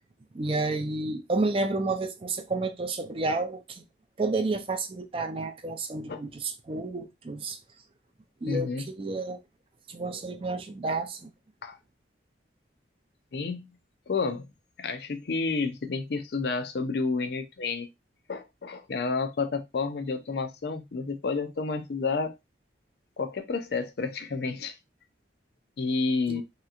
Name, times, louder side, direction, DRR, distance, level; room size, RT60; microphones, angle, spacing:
voice 1, 0.3-3.8 4.2-7.6 8.4-9.4 9.9-11.3 26.3-26.4, right 3 dB, 30° right, 0.4 m, -30 dB
voice 2, 8.4-8.8 11.6-11.8 13.3-13.7 14.1-14.5 14.8-17.9 18.3-22.3 23.2-24.8 25.8-26.4, left 4 dB, 55° left, 0.4 m, -30 dB
3.2 x 2.9 x 2.4 m
head